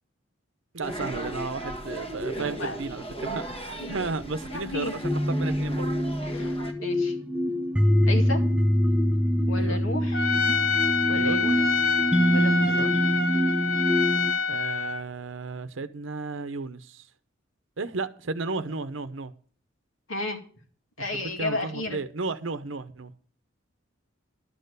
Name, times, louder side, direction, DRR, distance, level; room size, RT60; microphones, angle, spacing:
voice 1, 0.7-6.0 9.5-9.8 11.1-11.4 12.6-12.9 14.5-17.0 17.8-19.3 21.1-23.1, right 3 dB, 75° right, 0.8 m, -34 dB
sound 1, 0.8-6.7, right 1 dB, 30° left, 1.5 m, -37 dB
voice 2, 2.4-2.8 3.8-3.9 4.5-4.9 6.2-6.6 6.8-7.1 8.1-8.4 9.5-10.3 11.1-11.7 12.3-12.8 20.1-20.4 21.0-22.0, left 1 dB, 80° left, 2.3 m, -32 dB
sound 2, 5.0-14.3, equal, 5° right, 0.8 m, -24 dB
Trumpet, 10.1-15.0, left 5 dB, 45° left, 1.2 m, -26 dB
12.0 x 6.7 x 6.7 m
head